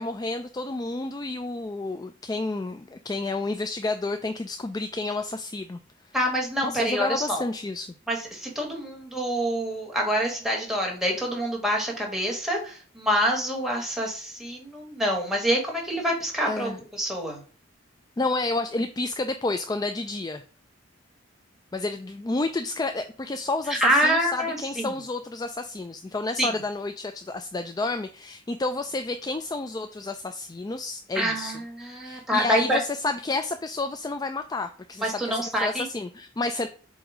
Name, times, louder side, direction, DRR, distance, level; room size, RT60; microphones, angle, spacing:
voice 1, 0.0-5.8 6.6-8.0 16.5-16.8 18.2-20.4 21.7-31.6 32.0-36.7, left 2 dB, 20° left, 7 dB, 0.3 m, -30 dB
voice 2, 6.1-7.4 8.1-17.4 23.7-24.9 26.4-26.5 31.1-32.8 35.0-35.8, equal, ahead, -1 dB, 1.8 m, -26 dB
7.7 x 2.7 x 5.0 m, 0.42 s
head